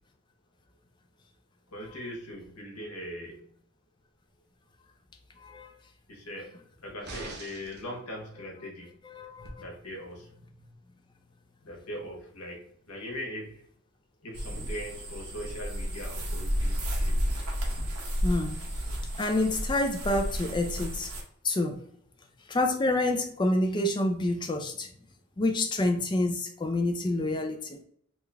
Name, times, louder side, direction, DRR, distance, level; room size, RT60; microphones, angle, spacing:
voice 1, 1.7-3.4 6.1-6.5 6.8-9.0 9.6-10.3 11.6-13.6 14.2-17.2, equal, 80° left, -1 dB, 1.1 m, -40 dB
voice 2, 5.4-5.7 9.1-9.6 18.2-18.6 19.2-21.1 21.4-21.8 22.5-24.9 25.4-27.8, left 2 dB, 20° left, 5 dB, 0.3 m, -28 dB
sound 1, 7.1-7.9 9.4-9.5, right 3 dB, 45° right, 0.6 m, -42 dB
sound 2, 14.3-21.2, equal, 75° right, 0.9 m, -32 dB
3.1 x 2.4 x 3.3 m, 0.65 s
head